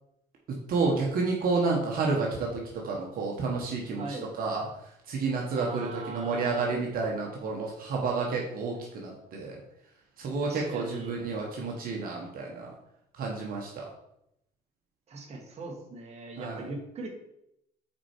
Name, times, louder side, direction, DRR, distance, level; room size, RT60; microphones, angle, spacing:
voice 1, 0.7-4.0 4.4-4.7 5.1-9.6 10.2-12.7 13.2-13.8 16.4-16.7, right 4 dB, 60° right, -2 dB, 1.4 m, -30 dB
voice 2, 4.0-4.3 5.5-6.7 10.4-11.2 15.1-17.1, right 2 dB, 40° right, 1 dB, 1.6 m, -40 dB
6.0 x 4.5 x 4.5 m, 0.79 s
cardioid pair, 110°, 17 cm